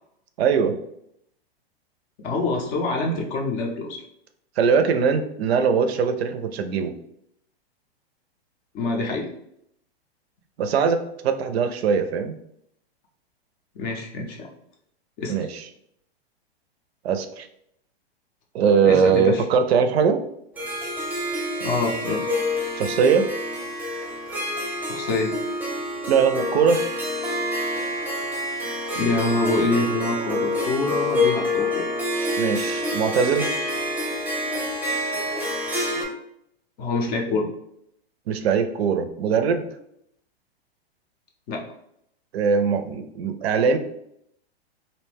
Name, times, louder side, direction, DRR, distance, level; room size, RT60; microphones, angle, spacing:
voice 1, 0.4-0.8 4.6-7.0 10.6-12.4 15.3-15.6 17.0-17.5 18.5-20.2 22.8-23.3 26.1-26.8 32.4-33.5 38.3-39.7 42.3-43.8, right 6 dB, 75° right, 8 dB, 0.5 m, -21 dB
voice 2, 2.2-4.0 8.7-9.3 13.7-14.5 15.2-15.5 18.8-19.4 21.6-22.3 24.8-25.3 28.9-31.8 36.8-37.5 41.5-41.6, left 3 dB, 30° left, 1 dB, 0.5 m, -26 dB
Harp, 20.6-36.0, left 1 dB, 5° right, 0.7 m, -27 dB
2.5 x 2.1 x 3.3 m, 0.75 s
hypercardioid pair, 125°, 31 cm